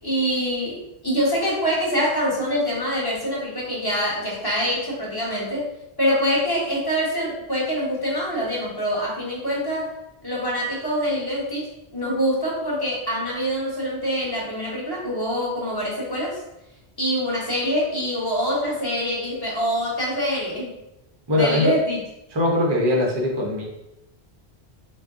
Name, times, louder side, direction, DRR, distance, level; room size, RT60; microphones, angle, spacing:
voice 1, 0.0-5.7 6.0-9.9 10.2-11.7 11.9-16.4 17.0-20.8 21.3-22.0, equal, 25° left, -5 dB, 1.1 m, -25 dB
voice 2, 21.3-21.7 22.3-23.7, left 1 dB, 30° right, -1 dB, 0.5 m, -21 dB
3.6 x 2.0 x 3.6 m, 0.89 s
omnidirectional pair, 1.1 m